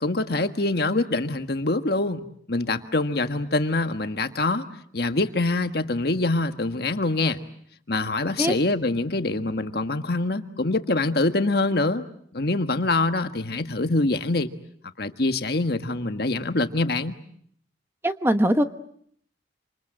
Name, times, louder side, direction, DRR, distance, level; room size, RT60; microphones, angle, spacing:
voice 1, 0.0-4.6 4.9-7.4 7.9-12.0 12.3-14.5 15.0-17.2, left 2 dB, 60° left, 8 dB, 1.6 m, -25 dB
voice 2, 18.0-18.6, equal, 15° right, 8 dB, 1.1 m, -21 dB
27.5 x 27.0 x 7.7 m, 0.68 s
head